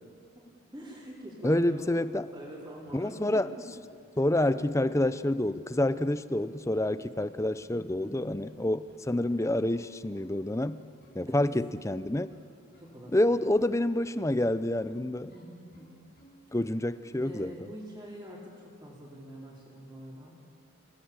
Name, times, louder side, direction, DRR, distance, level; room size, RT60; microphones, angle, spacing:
voice 1, 0.7-1.8 2.3-3.5 7.7-8.4 11.3-11.4 12.8-13.1 15.3-16.0 17.2-20.4, equal, 15° right, -7 dB, 4.3 m, -45 dB
voice 2, 1.4-2.3 2.9-3.5 4.2-10.8 11.1-12.3 13.1-15.3 16.5-17.5, left 1 dB, 15° left, 14 dB, 0.6 m, -28 dB
sound 1, 2.9-16.8, left 1 dB, 45° left, 7.3 m, -59 dB
29.5 x 19.0 x 8.9 m, 2.3 s
head